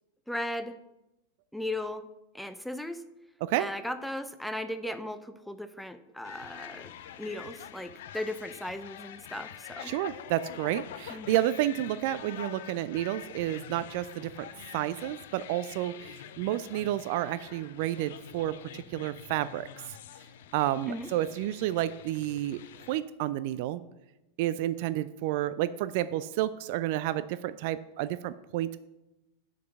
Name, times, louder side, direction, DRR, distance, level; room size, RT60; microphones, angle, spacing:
voice 1, 0.3-0.8 1.5-2.0 2.3-3.0 3.6-6.9 7.2-9.9 11.1-11.4 20.9-21.1, left 1 dB, ahead, 10 dB, 0.6 m, -37 dB
sound 1, 6.2-23.0, left 10 dB, 55° left, 0.5 m, -46 dB
voice 2, 9.8-19.7 20.5-22.6 22.9-23.8 24.4-28.8, right 14 dB, 50° right, 14 dB, 0.3 m, -30 dB
6.6 x 5.3 x 7.0 m, 0.95 s
figure-of-eight pair, 90°, 0 cm